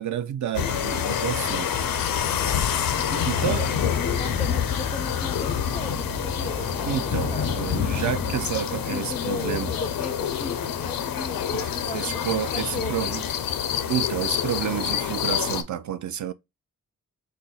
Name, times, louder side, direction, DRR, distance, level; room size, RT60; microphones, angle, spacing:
voice 1, 0.0-1.7 3.2-3.8 6.8-9.7 11.5-13.2 13.9-16.3, right 10 dB, 60° right, 0.4 m, -30 dB
sound 1, 0.5-15.6, left 8 dB, 85° left, 0.5 m, -27 dB
sound 2, 2.3-8.5, right 1 dB, 80° right, 1.3 m, -37 dB
voice 2, 3.1-3.6 4.0-7.7 8.7-12.9, left 3 dB, 20° left, 0.4 m, -37 dB
4.0 x 2.0 x 3.7 m
cardioid pair, 70°, 34 cm